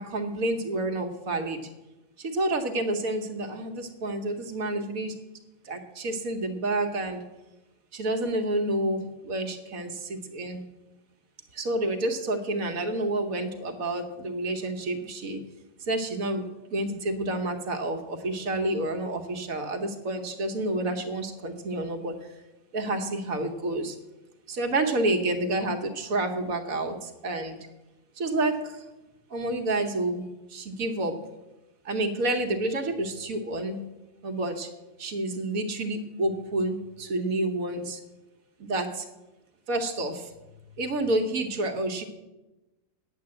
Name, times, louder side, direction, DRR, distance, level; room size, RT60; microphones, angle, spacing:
voice 1, 0.0-1.7 2.2-5.1 5.6-7.2 7.9-10.6 11.5-15.4 15.8-22.3 22.7-24.0 24.5-27.6 28.2-28.8 29.3-31.2 31.8-33.8 34.2-34.7 35.0-38.0 38.6-39.1 39.7-40.3 40.8-42.0, right 2 dB, 70° right, 4 dB, 1.5 m, -29 dB
9.5 x 7.8 x 7.7 m, 1.0 s
omnidirectional pair, 1.5 m